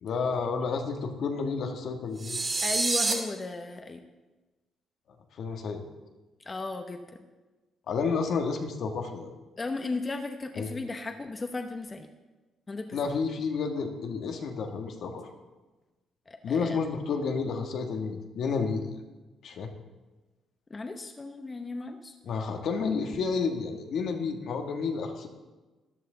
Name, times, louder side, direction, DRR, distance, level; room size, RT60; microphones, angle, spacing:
voice 1, 0.0-2.4 5.3-5.8 7.9-9.3 10.6-10.7 12.9-15.3 16.4-18.9 19.4-19.7 22.2-25.3, left 5 dB, 70° left, 4 dB, 1.5 m, -30 dB
sound 1, 2.2-3.1, right 3 dB, 35° right, 3.0 m, -27 dB
voice 2, 2.6-4.0 6.5-7.0 9.6-12.1 12.7-13.0 16.3-16.8 20.7-22.2, left 3 dB, 30° left, 5 dB, 0.9 m, -35 dB
14.0 x 11.0 x 3.9 m, 1.2 s
cardioid pair, 90°, 0 cm